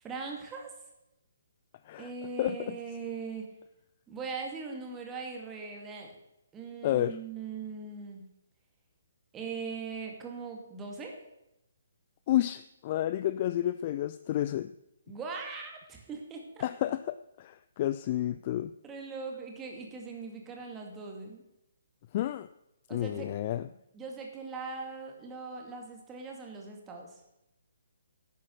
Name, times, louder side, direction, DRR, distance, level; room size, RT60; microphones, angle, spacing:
voice 1, 0.0-0.7 2.0-3.5 4.1-6.1 6.5-8.2 9.3-11.2 15.1-16.6 18.8-21.4 22.9-23.3 23.6-27.1, right 4 dB, 15° right, 1 dB, 2.2 m, -40 dB
voice 2, 2.4-2.8 6.8-7.2 12.3-14.7 16.6-18.7 22.1-22.5 22.9-23.7, left 13 dB, 30° left, 13 dB, 0.4 m, -30 dB
11.0 x 8.6 x 6.4 m, 0.87 s
figure-of-eight pair, 135°, 0 cm